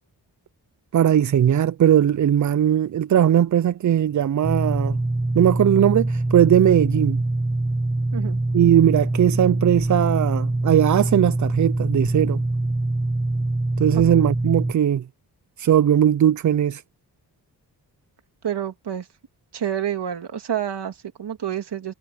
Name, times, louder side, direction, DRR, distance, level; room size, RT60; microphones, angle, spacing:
voice 1, 0.9-5.0 5.3-7.2 8.5-12.4 13.8-15.0 15.6-16.8, right 10 dB, 50° right, 0.5 m, -19 dB
sound 1, 4.4-14.7, right 2 dB, 10° right, 1.2 m, -24 dB
voice 2, 18.4-19.1 19.5-21.9, right 9 dB, 80° right, 2.8 m, -28 dB
wide cardioid pair, 110°, 40 cm